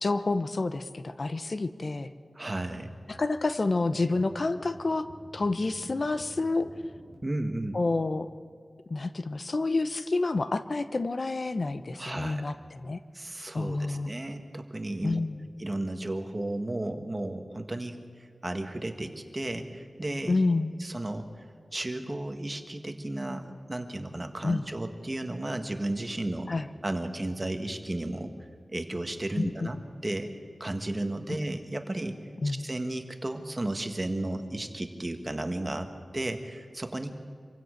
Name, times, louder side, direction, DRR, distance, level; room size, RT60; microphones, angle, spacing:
voice 1, 0.0-2.1 3.1-5.1 5.3-6.7 7.7-8.3 8.9-13.0 13.5-14.1 15.0-15.5 20.3-20.7 24.4-24.6 26.5-26.7 29.4-29.7 32.4-32.7, left 3 dB, 55° left, 12 dB, 0.8 m, -29 dB
voice 2, 2.4-2.9 7.2-7.8 12.0-12.4 13.1-15.2 15.6-20.4 20.8-21.3 21.7-26.5 26.8-28.3 28.7-30.3 30.6-32.2 32.4-37.1, right 1 dB, 30° right, 6 dB, 1.7 m, -34 dB
sound 1, 3.9-7.1, right 1 dB, 20° left, 5.5 m, -49 dB
25.5 x 16.0 x 6.6 m, 2.1 s
wide cardioid pair, 65°, 0 cm